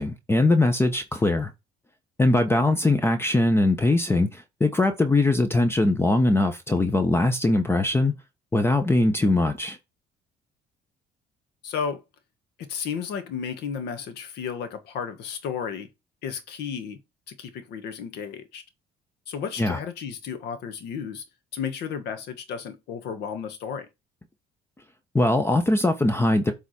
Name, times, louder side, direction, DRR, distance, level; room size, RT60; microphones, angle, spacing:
voice 1, 0.0-1.5 2.2-8.1 8.5-9.8 19.6-19.8 25.1-26.5, left 2 dB, 15° left, 0.9 m, -21 dB
voice 2, 11.6-12.0 12.7-15.9 16.2-17.0 17.3-18.6 19.3-21.2 21.5-23.9, left 7 dB, 80° left, 1.5 m, -33 dB
7.9 x 3.7 x 4.3 m
cardioid pair, 110°, 17 cm